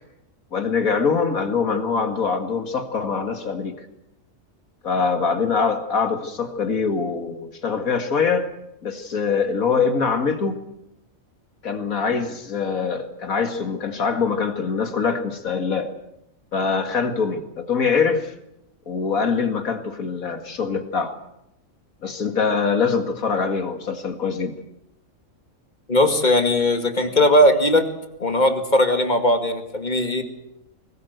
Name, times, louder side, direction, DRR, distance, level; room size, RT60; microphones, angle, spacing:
voice 1, 0.5-3.9 4.8-8.5 8.8-10.6 11.6-15.9 16.5-18.3 18.9-21.2 22.0-24.6, left 5 dB, 80° left, 7 dB, 2.5 m, -23 dB
voice 2, 25.9-27.9 28.2-30.2, left 1 dB, 35° left, 6 dB, 2.2 m, -18 dB
21.5 x 19.5 x 8.0 m, 0.85 s
omnidirectional pair, 1.4 m